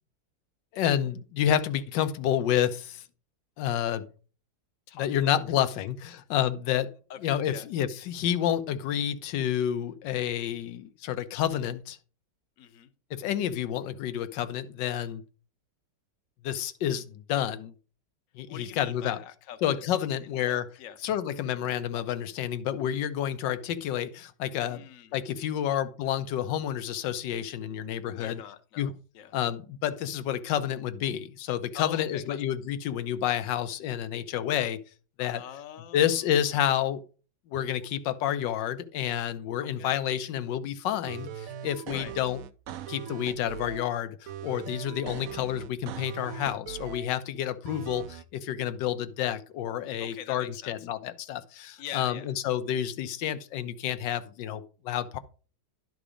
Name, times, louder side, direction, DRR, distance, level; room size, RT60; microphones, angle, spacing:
voice 1, 0.7-3.0 3.6-4.1 5.0-6.9 7.2-12.0 13.1-15.2 16.4-17.7 18.4-19.2 19.6-20.7 21.0-24.8 25.1-28.4 28.8-28.9 29.3-34.8 35.2-35.4 35.9-37.0 37.5-42.4 42.9-55.2, left 10 dB, 90° left, 1.3 m, -29 dB
voice 2, 4.9-5.3 7.1-7.7 12.6-12.9 18.5-21.0 24.7-25.1 28.2-29.3 31.7-32.4 35.2-36.4 39.6-39.9 41.9-42.2 47.7-47.9 50.0-50.9 51.8-52.3, left 10 dB, 60° left, 1.0 m, -44 dB
sound 1, 41.1-43.9 44.3-47.1 47.7-48.2, right 9 dB, 70° right, 0.8 m, -40 dB
11.0 x 4.0 x 4.9 m
omnidirectional pair, 1.9 m